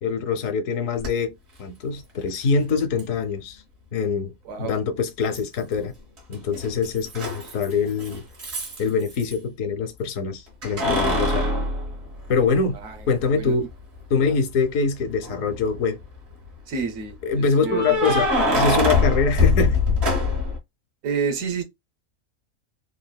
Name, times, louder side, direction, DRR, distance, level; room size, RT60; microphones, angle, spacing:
voice 1, 0.0-3.6 3.9-4.3 4.6-5.9 6.3-8.2 8.8-11.5 12.3-12.8 13.1-13.7 14.1-16.0 17.2-19.8, left 5 dB, 80° left, 1.0 m, -24 dB
Keys jangling, 1.0-1.1 3.0-3.1 5.3-5.9 6.2-9.4 10.6-12.7 13.2-13.3 15.1-15.7 17.6-20.6, left 2 dB, 55° right, 1.3 m, -23 dB
voice 2, 4.5-4.8 12.7-13.0 13.3-13.5 16.7-18.3 21.0-21.6, right 6 dB, 85° right, 1.1 m, -29 dB
3.3 x 2.3 x 2.2 m
omnidirectional pair, 1.4 m